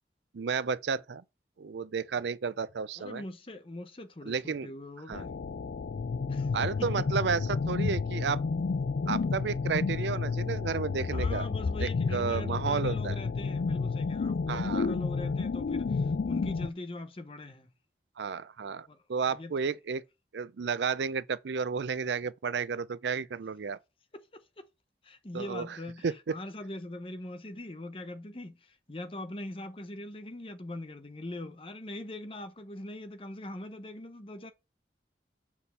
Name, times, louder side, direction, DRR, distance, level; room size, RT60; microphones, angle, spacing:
voice 1, 0.3-1.2 1.6-3.2 4.2-4.7 5.1-5.2 6.5-8.4 9.1-11.5 11.8-13.2 14.5-14.9 18.2-20.0 20.3-23.8 25.3-25.8 26.0-26.3, right 5 dB, 80° right, 0.5 m, -32 dB
voice 2, 3.0-5.4 6.3-6.5 6.8-6.9 11.1-17.7 18.9-19.0 19.3-19.5 24.1-24.7 25.0-34.5, left 1 dB, 30° left, 0.8 m, -42 dB
sound 1, 5.1-16.7, left 4 dB, 65° left, 0.4 m, -31 dB
7.2 x 4.2 x 5.6 m
head